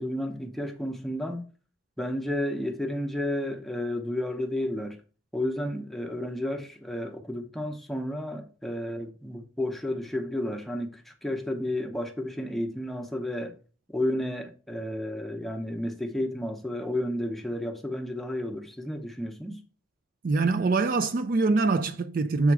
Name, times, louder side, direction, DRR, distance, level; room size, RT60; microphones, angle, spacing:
voice 1, 0.0-1.5 2.0-5.0 5.3-13.5 13.9-19.6, left 1 dB, ahead, 0.7 m, -32 dB
voice 2, 20.2-22.5, right 3 dB, 45° right, 0.4 m, -24 dB
7.1 x 3.6 x 4.7 m
head